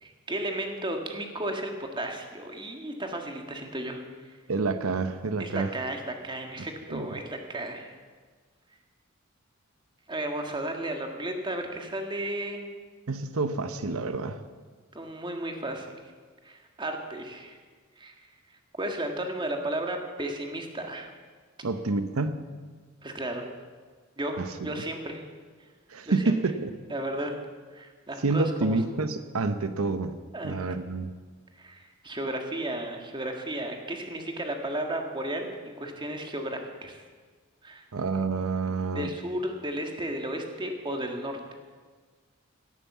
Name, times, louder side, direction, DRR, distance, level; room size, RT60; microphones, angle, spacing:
voice 1, 0.0-4.0 5.4-7.9 10.1-12.7 14.9-15.9 16.4-17.6 18.0-18.2 18.7-21.1 23.0-23.5 24.2-25.2 26.1-26.3 26.9-27.3 27.7-28.8 30.3-30.6 31.6-37.0 37.6-37.8 39.0-41.5, right 1 dB, 25° right, 3 dB, 1.7 m, -34 dB
voice 2, 4.5-5.7 6.9-7.1 13.1-14.4 21.6-22.4 24.4-24.8 25.9-26.7 28.2-30.1 30.4-31.1 37.9-39.1, right 3 dB, 90° right, 10 dB, 0.8 m, -28 dB
17.5 x 9.3 x 7.4 m, 1.5 s
head